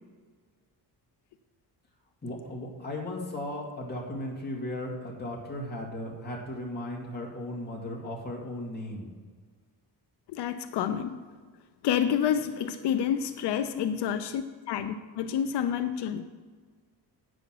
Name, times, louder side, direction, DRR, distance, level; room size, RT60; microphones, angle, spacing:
voice 1, 2.2-9.1 12.6-12.7 13.7-13.9, left 1 dB, 25° left, 2.3 m, -36 dB
voice 2, 10.3-11.2 11.8-16.2, left 9 dB, 85° left, 0.6 m, -29 dB
8.9 x 6.4 x 5.8 m
cardioid pair, 125°, 40 cm